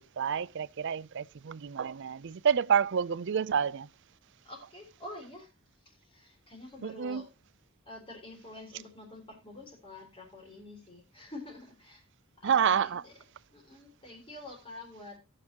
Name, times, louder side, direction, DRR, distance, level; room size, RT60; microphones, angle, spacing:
voice 1, 0.0-3.9 6.8-7.2 12.4-13.0, right 7 dB, 60° right, 0.5 m, -28 dB
voice 2, 4.4-5.5 5.8-7.3 7.8-12.0 12.4-13.1 13.5-15.2, left 2 dB, 25° left, 3.4 m, -47 dB
18.5 x 6.6 x 2.9 m
head